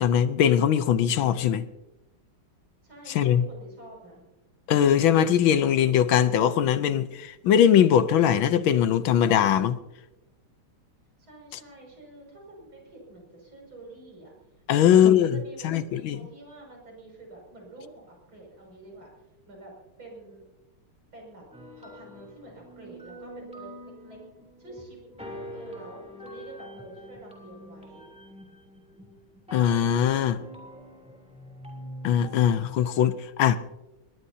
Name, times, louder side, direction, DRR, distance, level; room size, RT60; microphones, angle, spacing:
voice 1, 0.0-1.6 3.1-3.4 4.7-9.8 14.7-15.4 15.6-16.2 29.5-30.4 32.0-33.6, left 9 dB, 75° left, 1.4 m, -21 dB
voice 2, 2.8-4.2 11.2-14.3 14.7-15.0 15.3-19.1 19.5-19.7 20.0-20.5 21.1-21.4 21.8-24.2 24.6-28.1, right 2 dB, 70° right, 6.9 m, -47 dB
sound 1, 21.5-33.0, equal, 5° right, 3.0 m, -44 dB
22.5 x 20.0 x 2.8 m
omnidirectional pair, 2.3 m